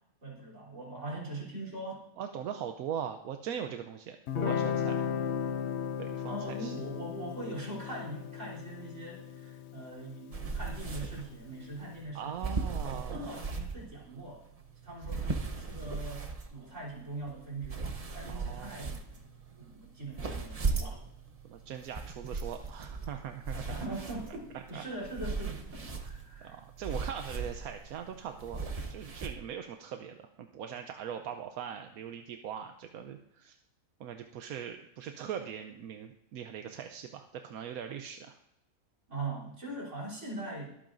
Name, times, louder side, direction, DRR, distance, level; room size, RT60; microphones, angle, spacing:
voice 1, 0.2-2.1 6.3-12.6 12.9-14.4 14.8-17.9 18.1-19.3 19.6-21.0 23.7-26.5 39.1-40.7, right 2 dB, 55° right, -3 dB, 3.8 m, -41 dB
voice 2, 2.2-5.1 6.0-6.7 12.1-13.3 15.2-15.4 18.3-18.9 21.4-23.8 24.5-24.8 26.4-28.6 28.9-33.6 34.0-38.4, right 8 dB, 85° right, 6 dB, 1.1 m, -41 dB
Guitar, 4.3-11.4, left 8 dB, 60° left, 0.8 m, -36 dB
sound 1, 10.3-29.3, right 4 dB, 30° right, 0.8 m, -38 dB
22.5 x 8.8 x 2.6 m, 0.83 s
omnidirectional pair, 1.5 m